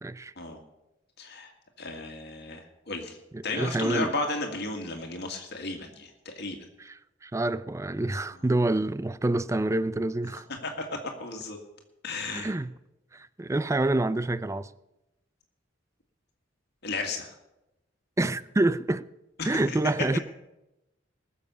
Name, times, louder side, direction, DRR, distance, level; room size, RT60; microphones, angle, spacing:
voice 1, 0.0-0.3 3.3-4.1 6.8-10.5 12.3-12.7 13.1-14.7 18.2-19.0 19.4-20.2, right 2 dB, 15° right, 0.4 m, -27 dB
voice 2, 1.2-1.5 1.8-3.2 3.4-6.7 10.6-11.6 12.0-12.5 16.8-17.3 19.4-19.8, left 3 dB, 60° left, 1.8 m, -34 dB
20.0 x 7.2 x 6.8 m
head